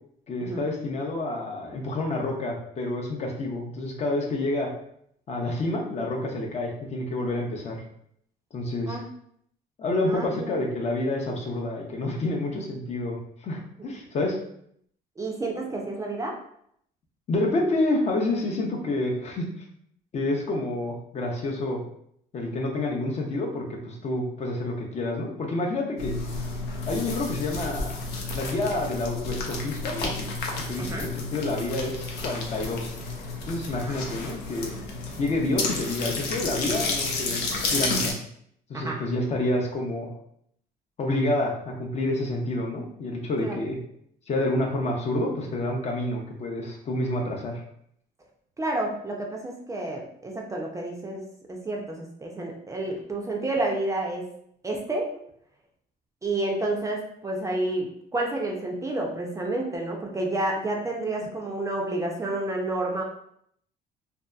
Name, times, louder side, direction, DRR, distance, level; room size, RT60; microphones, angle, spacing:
voice 1, 0.3-4.7 5.3-7.8 8.5-9.0 9.8-14.4 17.3-19.5 20.1-21.8 22.3-26.1 26.9-28.1 28.3-30.2 30.7-32.9 33.5-34.7 35.2-38.1 38.7-40.1 41.0-43.8 44.3-47.6, left 2 dB, 40° left, 0 dB, 0.5 m, -28 dB
voice 2, 10.1-10.6 13.8-13.9 15.2-16.4 30.8-31.1 33.8-33.9 38.7-39.0 43.4-43.6 48.6-51.2 51.5-54.3 54.6-55.2 56.2-63.0, right 2 dB, 20° right, -1 dB, 0.4 m, -30 dB
sound 1, 26.0-38.1, left 3 dB, 85° left, 0.6 m, -31 dB
2.6 x 2.3 x 2.2 m, 0.69 s
cardioid pair, 110°, 17 cm